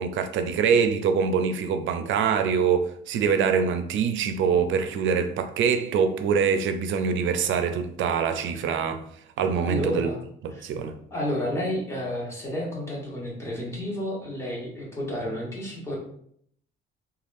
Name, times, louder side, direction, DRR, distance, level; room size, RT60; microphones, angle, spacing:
voice 1, 0.0-9.0 9.4-10.1 10.4-11.0, right 6 dB, 75° right, 0.4 m, -24 dB
voice 2, 9.6-10.2 10.5-10.6 11.1-15.9, left 1 dB, 15° left, 1.2 m, -31 dB
3.3 x 2.3 x 2.5 m
cardioid pair, 90°, 20 cm